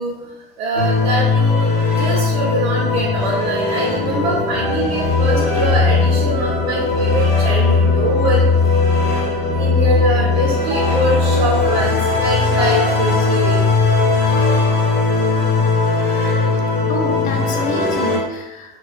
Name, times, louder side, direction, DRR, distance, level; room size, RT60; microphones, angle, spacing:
voice 1, 0.0-8.4 9.5-13.8, right 2 dB, 70° right, -5 dB, 0.6 m, -24 dB
sound 1, 0.7-18.2, left 4 dB, 75° left, 0.8 m, -17 dB
voice 2, 16.9-18.8, left 2 dB, 30° left, 2 dB, 0.4 m, -27 dB
2.3 x 2.1 x 2.5 m, 0.93 s
hypercardioid pair, 85°, 30 cm